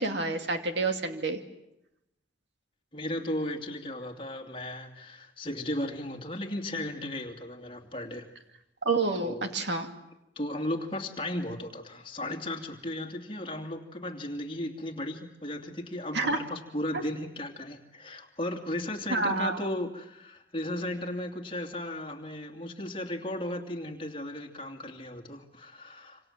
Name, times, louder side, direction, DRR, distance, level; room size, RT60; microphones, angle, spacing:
voice 1, 0.0-1.4 8.8-9.9 16.1-16.4 16.9-17.0 19.1-19.6, right 3 dB, 70° right, 5 dB, 2.5 m, -28 dB
voice 2, 2.9-8.3 9.2-9.5 10.4-26.3, left 1 dB, 30° left, 3 dB, 2.8 m, -35 dB
27.0 x 26.5 x 7.5 m, 0.89 s
head